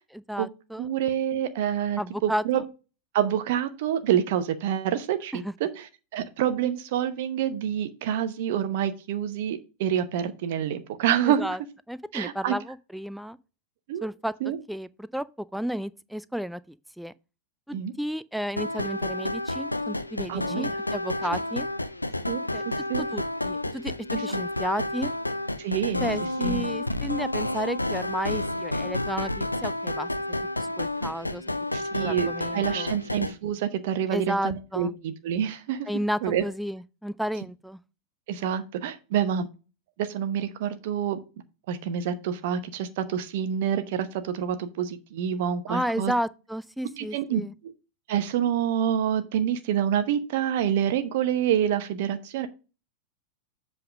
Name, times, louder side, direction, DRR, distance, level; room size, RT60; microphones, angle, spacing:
voice 1, 0.1-0.9 2.0-2.6 5.3-5.5 11.2-11.6 11.9-13.4 14.0-14.3 14.7-17.1 17.7-21.7 22.5-22.7 23.0-23.9 24.2-25.1 26.0-30.1 30.6-31.5 32.0-33.0 34.1-34.9 35.9-37.8 45.7-47.5, equal, ahead, 0.4 m, -32 dB
voice 2, 0.8-2.6 3.1-5.7 6.1-11.6 12.1-12.5 13.9-14.1 14.4-14.6 17.7-17.9 20.3-20.7 22.3-23.0 24.1-24.4 25.6-26.0 26.4-26.6 31.7-35.9 36.2-36.4 38.3-39.5 40.0-41.2 41.7-46.1 47.0-47.7 48.1-52.5, right 9 dB, 50° right, 0.8 m, -27 dB
sound 1, 18.6-33.3, left 1 dB, 85° left, 0.5 m, -30 dB
7.7 x 3.6 x 5.9 m
figure-of-eight pair, 90°, 0 cm